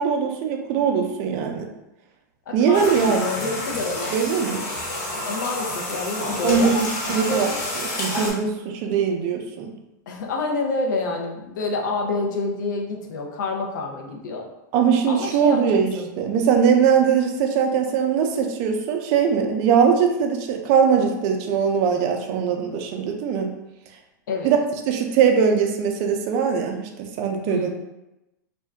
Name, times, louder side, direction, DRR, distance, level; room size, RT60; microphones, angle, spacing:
voice 1, 0.0-1.7 2.5-3.3 4.1-4.6 6.4-7.5 8.0-9.7 14.7-23.5 24.4-24.6 24.9-27.7, right 7 dB, 40° right, 3 dB, 0.5 m, -21 dB
voice 2, 2.5-4.1 5.2-7.5 10.1-14.5 15.1-16.1 24.3-24.5 27.5-27.7, left 3 dB, 75° left, 1 dB, 0.6 m, -28 dB
sound 1, 2.7-8.3, left 1 dB, 55° left, 1.1 m, -29 dB
2.5 x 2.2 x 3.4 m, 0.96 s
supercardioid pair, 140°, 10 cm